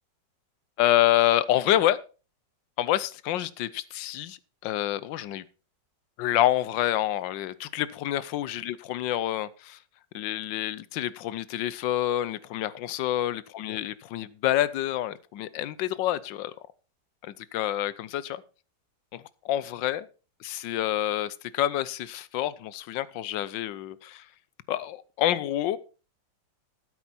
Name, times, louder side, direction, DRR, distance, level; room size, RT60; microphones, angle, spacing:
voice 1, 0.8-2.0 2.8-5.4 6.2-9.8 10.1-16.5 17.2-18.4 19.1-20.1 20.4-24.2 24.7-25.8, left 13 dB, 90° left, 1.4 m, -27 dB
12.5 x 9.1 x 4.3 m
omnidirectional pair, 1.9 m